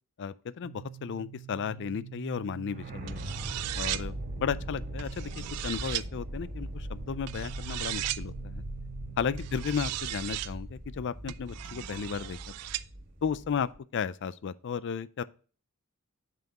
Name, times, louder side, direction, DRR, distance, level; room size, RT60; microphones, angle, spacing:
voice 1, 0.2-3.2 3.7-5.3 5.6-8.6 9.2-12.4 13.2-15.2, left 6 dB, 55° left, 0.4 m, -34 dB
sound 1, 0.6-10.4, right 12 dB, 5° right, 2.5 m, -47 dB
sound 2, 2.7-13.8, equal, 40° right, 2.3 m, -40 dB
sound 3, 3.1-4.0 5.0-6.0 7.3-8.2 9.4-10.5 11.3-12.8, right 15 dB, 90° right, 0.4 m, -36 dB
9.1 x 5.7 x 2.9 m
head